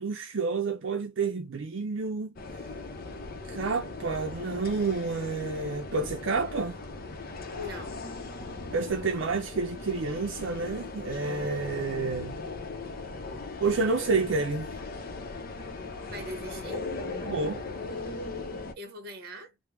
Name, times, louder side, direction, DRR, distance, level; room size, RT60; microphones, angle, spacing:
voice 1, 0.0-2.3 3.5-6.8 8.7-12.4 13.6-14.7 17.2-17.6, right 4 dB, 80° right, 0.5 m, -29 dB
sound 1, 2.4-18.7, left 3 dB, 50° left, 0.6 m, -38 dB
voice 2, 7.5-8.2 16.1-16.9 18.8-19.6, left 1 dB, 55° right, 1.0 m, -41 dB
3.4 x 2.1 x 3.0 m
head